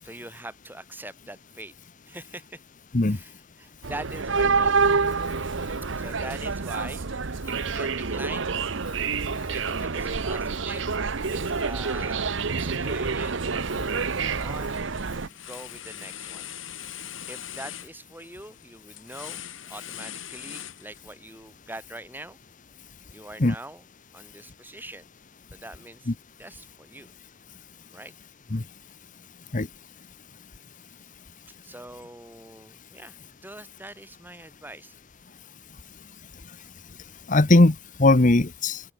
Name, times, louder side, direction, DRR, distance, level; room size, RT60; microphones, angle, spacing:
voice 1, 0.0-1.7 2.0-2.6 3.1-4.9 6.0-7.0 7.5-8.5 9.5-10.8 11.3-13.4 14.1-16.5 17.3-22.4 23.1-23.8 24.1-25.1 25.5-27.1 27.9-28.1 31.6-35.0, right 1 dB, 10° right, 7.3 m, -43 dB
sound 1, 3.8-15.3, right 4 dB, 65° right, 0.9 m, -27 dB
sound 2, 14.1-14.4 14.8-21.3, left 10 dB, 70° left, 6.2 m, -41 dB
voice 2, 37.3-38.8, left 2 dB, 40° left, 1.0 m, -19 dB
open air
head